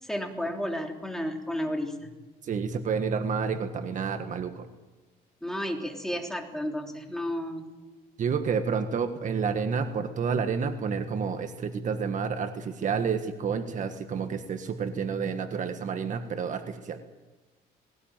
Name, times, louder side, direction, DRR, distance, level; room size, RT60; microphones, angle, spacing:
voice 1, 0.0-2.1 5.4-7.7, equal, 5° left, 2 dB, 3.3 m, -32 dB
voice 2, 2.4-4.7 8.2-17.0, right 6 dB, 50° right, 7 dB, 1.5 m, -29 dB
20.0 x 18.0 x 9.1 m, 1.2 s
cardioid pair, 120°, 17 cm